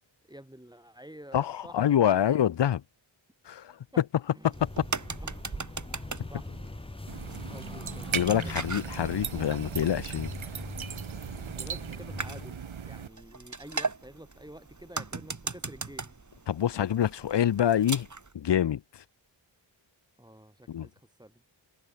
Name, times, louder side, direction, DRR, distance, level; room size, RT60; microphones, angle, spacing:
voice 1, 0.3-2.4 4.3-4.7 5.1-5.4 6.0-6.6 7.5-8.5 11.6-16.2 20.2-21.4, right 1 dB, 10° right, 7.7 m, -49 dB
voice 2, 1.3-2.8 3.5-3.7 4.8-4.9 8.1-10.3 16.5-18.1 18.3-18.8 20.7-20.9, left 10 dB, 55° left, 0.8 m, -26 dB
sound 1, 4.5-12.5, left 2 dB, 10° left, 0.9 m, -42 dB
sound 2, 4.5-18.3, right 3 dB, 35° right, 4.3 m, -40 dB
sound 3, 7.1-13.1, right 7 dB, 70° right, 2.0 m, -38 dB
wide cardioid pair, 75°, 50 cm